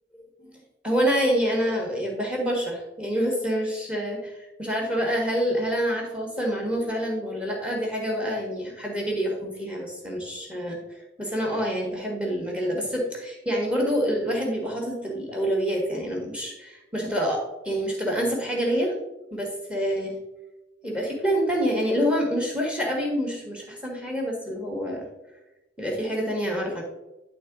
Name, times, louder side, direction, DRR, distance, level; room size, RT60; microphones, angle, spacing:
voice 1, 0.1-0.5 0.8-18.9 19.3-20.2 20.8-25.0 25.8-26.8, equal, 5° right, 0 dB, 1.4 m, -27 dB
10.5 x 3.9 x 3.6 m, 1.0 s
head